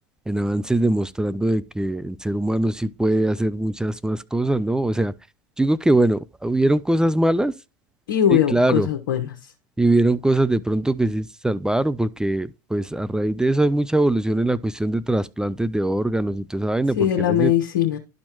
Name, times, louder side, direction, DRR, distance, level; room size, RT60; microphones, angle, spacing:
voice 1, 0.3-5.1 5.6-7.5 8.3-8.9 9.8-17.5, right 1 dB, 5° right, 0.4 m, -22 dB
voice 2, 8.1-9.3 17.0-18.0, left 10 dB, 80° left, 1.0 m, -20 dB
11.5 x 4.3 x 3.0 m
hypercardioid pair, 85°, 11 cm